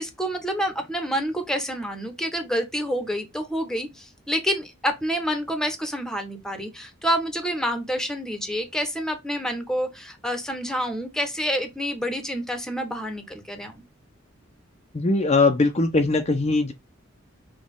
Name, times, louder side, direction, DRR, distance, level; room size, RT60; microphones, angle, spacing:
voice 1, 0.0-13.8, equal, 5° left, 0.9 m, -28 dB
voice 2, 14.9-16.7, left 3 dB, 35° left, 0.6 m, -20 dB
6.2 x 2.3 x 3.5 m
head